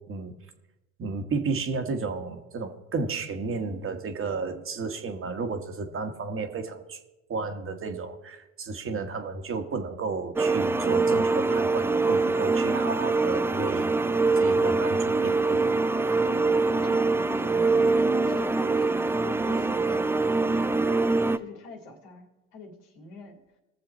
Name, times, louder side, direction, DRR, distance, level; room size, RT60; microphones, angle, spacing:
voice 1, 1.0-7.0 7.3-15.6, right 4 dB, 35° right, 6 dB, 1.4 m, -32 dB
sound 1, 10.4-21.4, right 3 dB, 5° right, 0.4 m, -24 dB
voice 2, 16.2-20.5 21.4-23.4, left 3 dB, 70° left, 3 dB, 2.3 m, -45 dB
18.5 x 7.0 x 4.3 m, 1.0 s
hypercardioid pair, 80°, 36 cm